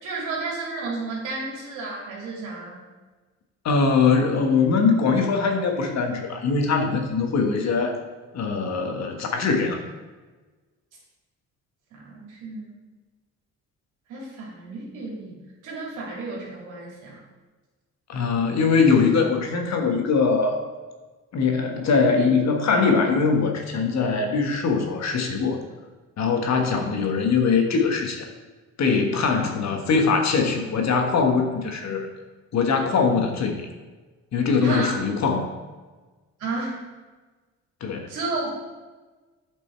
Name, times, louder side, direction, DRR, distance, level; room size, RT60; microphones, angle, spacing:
voice 1, 0.0-2.8 11.9-12.7 14.1-15.4 15.6-17.2 34.6-35.0 36.4-36.8 38.1-38.5, right 3 dB, 90° right, -3 dB, 2.6 m, -32 dB
voice 2, 3.6-8.0 8.3-9.8 18.1-20.6 21.3-25.6 26.2-28.3 28.8-32.1 32.5-33.7 34.3-35.5 37.8-38.1, left 5 dB, 60° left, 4 dB, 1.4 m, -22 dB
8.5 x 5.3 x 4.5 m, 1.3 s
cardioid pair, 90°, 30 cm